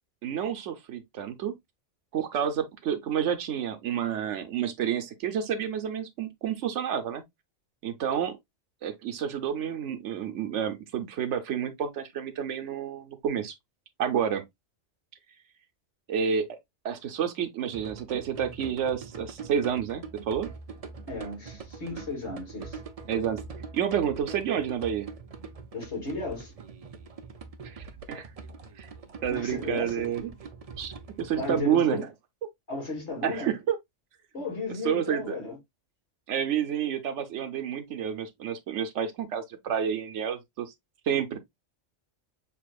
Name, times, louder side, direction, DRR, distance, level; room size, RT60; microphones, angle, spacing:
voice 1, 0.2-1.5 2.1-7.2 7.8-8.4 8.8-13.5 14.0-14.4 16.1-16.6 16.8-20.5 23.1-23.4 23.7-25.1 27.6-28.3 28.8-28.9 29.2-30.3 30.8-32.1 33.2-33.8 34.8-35.4 36.3-40.7 41.1-41.4, right 8 dB, 80° right, 1.1 m, -29 dB
sound 1, 17.7-31.6, right 5 dB, 40° right, 0.6 m, -43 dB
voice 2, 21.1-22.8 25.7-26.5 29.3-30.1 31.3-32.1 32.7-33.5 34.3-35.6, left 3 dB, 70° left, 2.6 m, -34 dB
6.8 x 2.9 x 2.3 m
omnidirectional pair, 1.2 m